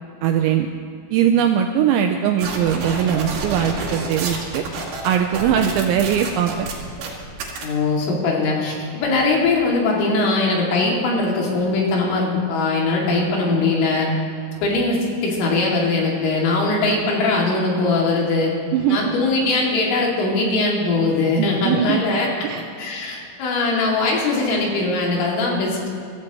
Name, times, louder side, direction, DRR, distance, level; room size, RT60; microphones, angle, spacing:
voice 1, 0.2-0.7 1.1-4.6 5.0-6.7 18.7-19.1 21.4-22.0 22.4-22.6, right 9 dB, 85° right, 4 dB, 2.6 m, -20 dB
sound 1, 2.4-7.7, right 3 dB, 60° right, 3.6 m, -29 dB
voice 2, 7.6-14.1 14.6-18.5 18.9-22.3 22.8-25.9, left 3 dB, 75° left, -3 dB, 5.0 m, -21 dB
24.0 x 14.0 x 3.1 m, 2.4 s
omnidirectional pair, 5.9 m